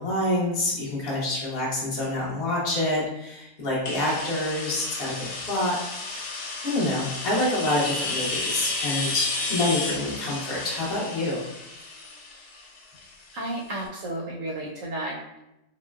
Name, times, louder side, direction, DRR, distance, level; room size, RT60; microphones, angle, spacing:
voice 1, 0.0-5.8 6.1-6.3 6.6-11.4, left 1 dB, 50° left, -4 dB, 0.7 m, -27 dB
sound 1, 3.9-13.5, left 3 dB, 80° left, 1.1 m, -32 dB
voice 2, 13.3-15.4, right 1 dB, 70° right, -4 dB, 0.8 m, -32 dB
3.8 x 2.1 x 2.2 m, 0.89 s
omnidirectional pair, 1.7 m